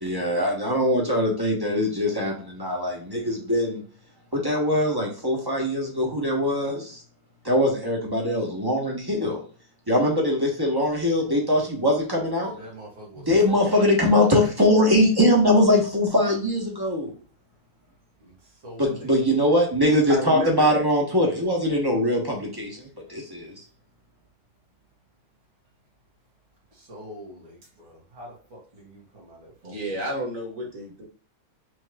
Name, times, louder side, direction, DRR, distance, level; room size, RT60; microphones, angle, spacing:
voice 1, 0.0-3.8 4.3-7.0 7.4-9.4 9.9-12.5 13.2-17.1 18.8-23.6, left 1 dB, 15° right, -1 dB, 1.0 m, -22 dB
voice 2, 12.5-13.8 18.1-19.1 19.4-19.5 26.7-30.1, equal, 85° right, -4 dB, 3.0 m, -45 dB
voice 3, 20.1-20.9 29.6-31.0, equal, 45° right, -1 dB, 1.8 m, -31 dB
6.2 x 3.1 x 2.4 m, 0.42 s
omnidirectional pair, 2.2 m